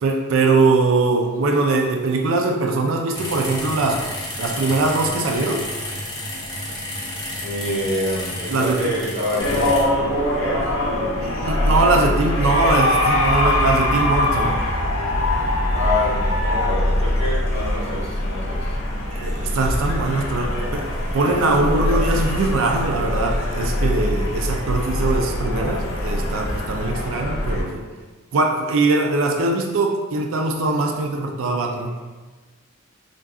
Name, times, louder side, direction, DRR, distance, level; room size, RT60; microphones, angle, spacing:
voice 1, 0.0-4.0 4.4-5.6 8.5-8.8 11.2-14.6 19.1-20.8 21.1-27.8 28.3-31.9, right 3 dB, 65° right, 2 dB, 0.4 m, -21 dB
sound 1, 3.1-9.8, left 1 dB, 20° left, 0.6 m, -31 dB
voice 2, 7.4-11.3 15.7-18.8 19.3-19.6, left 1 dB, 35° right, -8 dB, 0.9 m, -27 dB
sound 2, 9.4-27.6, left 1 dB, 75° left, 0.7 m, -22 dB
3.5 x 2.5 x 2.3 m, 1.3 s
head